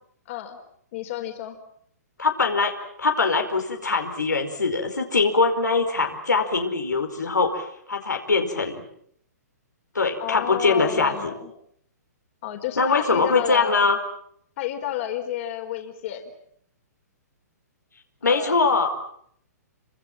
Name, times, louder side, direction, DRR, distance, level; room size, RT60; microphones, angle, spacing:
voice 1, 0.3-0.6 0.9-1.6 10.2-11.5 12.4-13.9 14.6-16.3 18.2-18.8, left 11 dB, 45° left, 5 dB, 4.6 m, -31 dB
voice 2, 2.2-2.7 3.0-8.8 9.9-11.3 12.8-14.0 18.2-18.9, left 4 dB, 90° left, 3 dB, 4.9 m, -22 dB
28.5 x 25.5 x 7.5 m, 0.67 s
hypercardioid pair, 125°, 9 cm